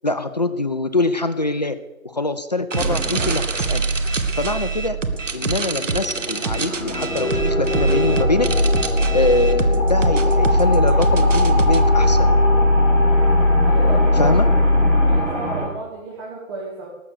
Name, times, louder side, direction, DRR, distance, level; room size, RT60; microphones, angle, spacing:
voice 1, 0.0-1.8 2.0-3.8 4.3-5.0 5.3-8.5 9.1-12.3 14.1-14.5, left 2 dB, 30° left, 11 dB, 0.6 m, -23 dB
sound 1, 2.7-11.8, right 4 dB, 65° right, 1.5 m, -25 dB
sound 2, 5.0-15.6, right 1 dB, 5° left, 6.4 m, -26 dB
sound 3, 6.8-15.2, left 2 dB, 80° left, 1.1 m, -18 dB
voice 2, 13.6-14.4 14.9-16.9, right 3 dB, 20° right, -5 dB, 2.1 m, -32 dB
19.0 x 7.6 x 6.5 m, 1.1 s
figure-of-eight pair, 150°, 40 cm